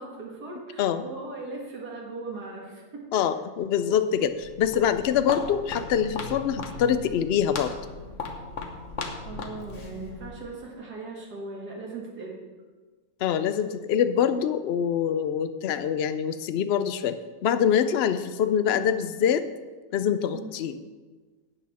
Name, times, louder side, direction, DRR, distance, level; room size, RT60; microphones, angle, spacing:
voice 1, 0.0-3.1 9.2-12.4 20.3-20.6, right 3 dB, 80° right, -3 dB, 2.2 m, -38 dB
voice 2, 3.1-7.7 13.2-19.4 19.9-20.7, left 8 dB, 85° left, 11 dB, 0.5 m, -25 dB
Walk footsteps, 4.3-10.4, left 4 dB, 55° left, 1.4 m, -37 dB
12.5 x 8.4 x 4.2 m, 1.4 s
omnidirectional pair, 1.7 m